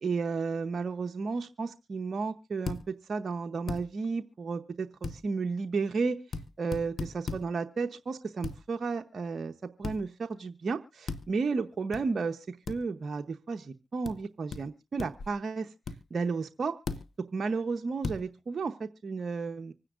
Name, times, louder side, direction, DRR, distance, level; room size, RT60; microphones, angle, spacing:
voice 1, 0.0-2.8 3.1-6.2 6.6-9.5 9.8-15.7 16.1-16.8 17.3-19.7, right 4 dB, 60° right, 6 dB, 0.8 m, -33 dB
sound 1, 2.7-2.8 3.7-3.8 5.0-5.2 6.3-6.5 6.7-7.4 8.4-8.6 9.8-10.0 11.1-11.2 11.9-12.0 12.7-12.8 14.0-14.2 14.5-14.6 15.0-15.3 15.9-16.0 16.9-17.0 18.0-18.2, left 4 dB, 70° left, 1.1 m, -35 dB
25.5 x 9.8 x 2.5 m, 0.28 s
supercardioid pair, 40°, 0 cm